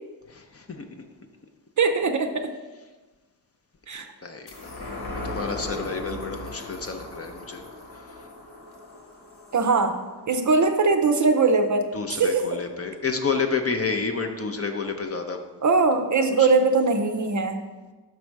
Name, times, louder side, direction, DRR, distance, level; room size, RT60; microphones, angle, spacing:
voice 1, 0.3-0.8 4.2-4.5 5.2-7.6 7.9-8.1 11.9-15.4 16.4-16.5, left 4 dB, 35° left, 5 dB, 0.6 m, -29 dB
voice 2, 1.8-2.5 3.9-4.1 9.5-10.0 10.3-12.6 15.6-17.6, right 4 dB, 45° right, 6 dB, 0.5 m, -21 dB
sound 1, 4.5-11.3 11.7-11.8, left 2 dB, 60° left, 1.3 m, -38 dB
6.1 x 5.3 x 4.6 m, 1.2 s
wide cardioid pair, 145°, 43 cm